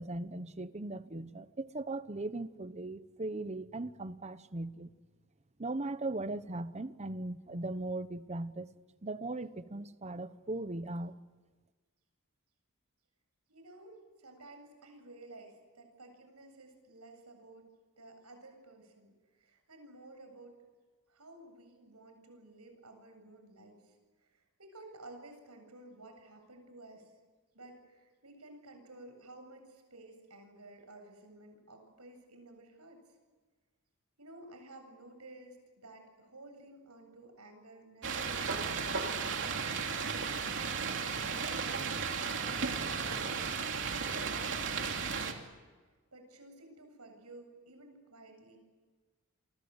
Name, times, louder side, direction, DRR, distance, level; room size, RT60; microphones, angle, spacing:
voice 1, 0.0-4.9 5.6-8.7 9.0-11.2, right 2 dB, 30° right, 13 dB, 1.0 m, -38 dB
voice 2, 13.5-17.6 18.0-20.6 21.1-27.1 27.5-33.2 34.2-39.2 39.9-40.6 41.2-41.5 41.8-43.3 43.6-45.5 46.1-48.6, right 2 dB, 85° right, 6 dB, 7.9 m, -54 dB
sound 1, 38.0-45.3, right 5 dB, 55° right, 3.2 m, -34 dB
29.0 x 25.0 x 8.1 m, 1.4 s
head